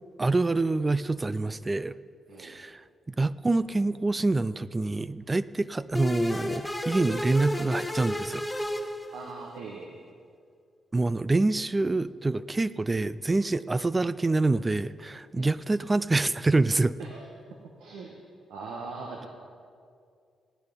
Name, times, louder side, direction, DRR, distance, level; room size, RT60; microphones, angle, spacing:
voice 1, 0.2-2.0 2.4-2.8 3.1-8.5 10.9-17.0, right 2 dB, 25° right, 16 dB, 0.4 m, -26 dB
sound 1, 5.9-9.5, left 1 dB, 10° left, 1.7 m, -32 dB
voice 2, 9.1-10.0 15.4-15.5 17.0-17.3 17.8-18.1 18.5-19.3, right 4 dB, 80° right, 0 dB, 1.2 m, -40 dB
16.5 x 9.6 x 5.2 m, 2.3 s
hypercardioid pair, 45°, 0 cm